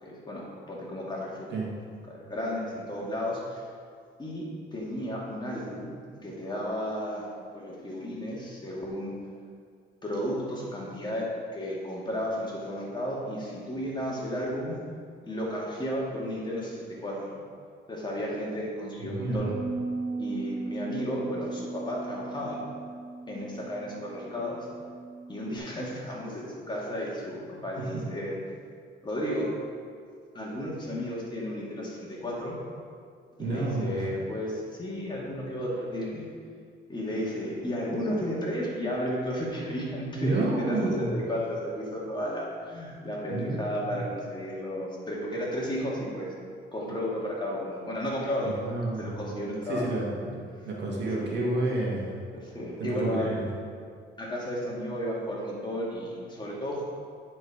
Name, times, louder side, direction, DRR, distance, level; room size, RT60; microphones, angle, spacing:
voice 1, 0.0-1.5 2.1-3.6 4.2-5.9 6.2-7.2 7.5-9.1 10.0-14.8 15.2-17.4 17.9-19.6 20.2-22.6 23.3-24.6 25.3-28.4 29.0-29.5 30.3-32.6 33.4-36.3 36.9-46.3 46.7-48.5 49.0-49.9 51.2-51.3 52.3-53.3 54.2-56.8, equal, 20° left, -4 dB, 2.2 m, -33 dB
voice 2, 19.0-19.5 27.8-28.0 33.4-34.1 40.1-41.2 43.3-44.0 48.4-49.1 49.7-52.2 52.8-53.5, right 2 dB, 60° right, -3 dB, 1.9 m, -30 dB
Bass guitar, 19.3-25.6, right 3 dB, 50° left, 2.0 m, -37 dB
9.5 x 4.5 x 5.0 m, 2.1 s
cardioid pair, 90°, 20 cm